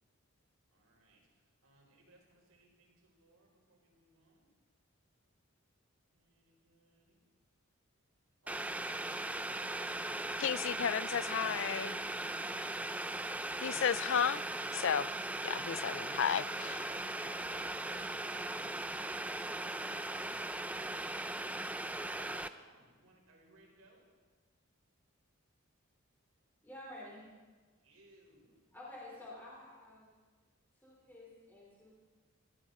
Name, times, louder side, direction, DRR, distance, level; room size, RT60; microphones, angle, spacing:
voice 1, 0.7-4.5 6.1-7.2 16.1-24.0 27.8-28.6, right 2 dB, 85° right, -1 dB, 5.3 m, -62 dB
Boiling, 8.5-22.5, right 2 dB, 5° right, 0.4 m, -39 dB
voice 2, 10.4-12.0 13.6-14.4 14.7-15.1 15.4-16.4, left 8 dB, 60° left, 18 dB, 0.4 m, -33 dB
voice 3, 26.6-27.3 28.7-30.1 30.8-32.0, left 1 dB, 10° left, -6 dB, 4.7 m, -50 dB
21.5 x 15.0 x 4.3 m, 1.4 s
head